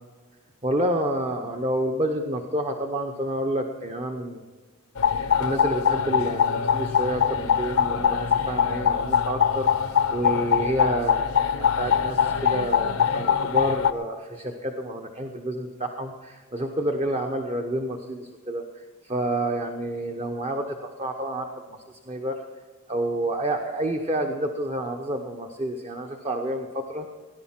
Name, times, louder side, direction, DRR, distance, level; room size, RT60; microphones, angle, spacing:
voice 1, 0.6-4.4 5.2-22.4 22.9-27.0, right 1 dB, 30° right, 3 dB, 0.9 m, -29 dB
sound 1, 5.0-13.9, left 7 dB, 75° left, 0.7 m, -23 dB
17.5 x 11.0 x 5.9 m, 1.4 s
head